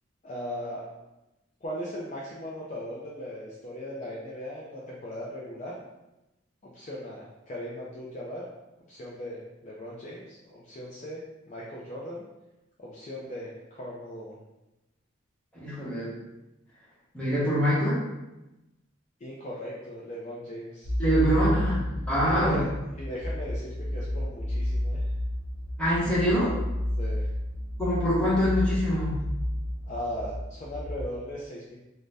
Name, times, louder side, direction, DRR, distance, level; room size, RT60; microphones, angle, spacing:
voice 1, 0.2-0.8 1.6-5.8 6.6-8.4 8.9-11.2 11.5-12.2 12.8-14.4 19.2-20.9 21.4-21.5 22.2-22.7 23.0-25.1 27.0-27.3 29.8-31.8, equal, 35° left, -5 dB, 0.3 m, -38 dB
voice 2, 15.6-16.1 17.1-18.0 21.0-21.8 22.1-22.6 25.8-26.6 27.8-29.2, equal, 5° left, -9 dB, 0.9 m, -24 dB
sound 1, 20.8-31.0, left 1 dB, 65° left, 0.7 m, -31 dB
2.6 x 2.1 x 3.3 m, 0.99 s
head